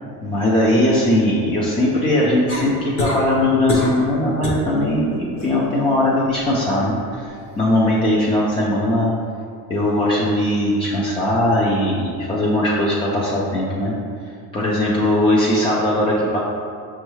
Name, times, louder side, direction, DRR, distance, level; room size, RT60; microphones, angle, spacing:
voice 1, 0.2-7.3 7.6-9.1 9.7-13.9 14.5-16.4, left 1 dB, 15° left, -6 dB, 0.3 m, -19 dB
sound 1, 2.5-3.2 3.7-4.0 4.4-4.7 5.1-5.5 7.3-7.4, left 2 dB, 30° left, 0.8 m, -24 dB
5.2 x 2.3 x 3.1 m, 2.3 s
supercardioid pair, 95°, 46 cm